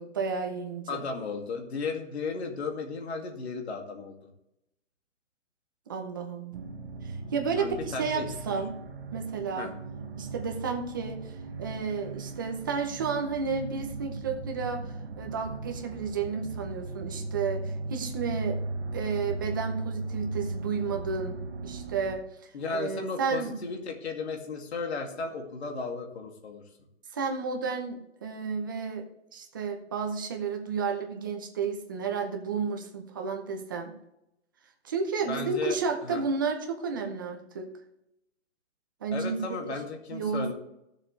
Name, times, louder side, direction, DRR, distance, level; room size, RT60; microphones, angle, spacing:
voice 1, 0.0-1.0 5.9-6.6 7.0-8.7 9.1-9.7 10.2-18.6 18.9-21.4 21.6-23.6 27.1-29.0 29.3-33.9 34.8-37.6 39.0-39.8 40.1-40.5, right 5 dB, 15° right, 3 dB, 0.7 m, -32 dB
voice 2, 0.9-4.2 7.6-8.2 9.6-9.7 22.5-26.6 35.3-36.2 39.1-40.5, left 4 dB, 55° left, 3 dB, 2.3 m, -35 dB
sound 1, 6.5-22.2, right 3 dB, 55° right, 1.4 m, -37 dB
16.0 x 7.3 x 3.2 m, 0.84 s
hypercardioid pair, 175°, 38 cm